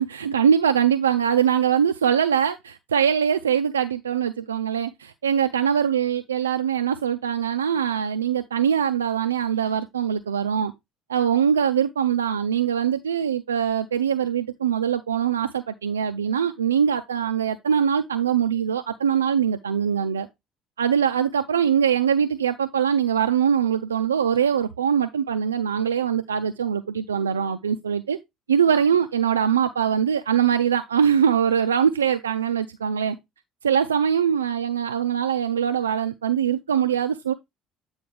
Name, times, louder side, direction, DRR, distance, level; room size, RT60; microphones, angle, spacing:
voice 1, 0.0-10.7 11.1-20.3 20.8-28.2 28.5-33.2 33.6-37.3, right 8 dB, 75° right, 0.3 m, -22 dB
8.8 x 4.2 x 3.3 m
figure-of-eight pair, 55°, 0 cm